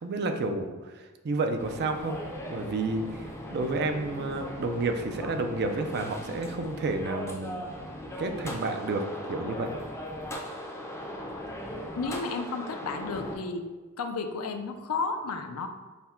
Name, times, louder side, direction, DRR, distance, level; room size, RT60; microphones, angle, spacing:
voice 1, 0.0-7.7 8.2-9.7, right 3 dB, 50° right, 6 dB, 0.4 m, -31 dB
sound 1, 1.6-13.4, left 1 dB, 15° left, 0.5 m, -39 dB
voice 2, 12.0-13.6 14.0-15.7, left 4 dB, 75° left, 6 dB, 0.5 m, -32 dB
5.7 x 2.1 x 4.3 m, 1.3 s
head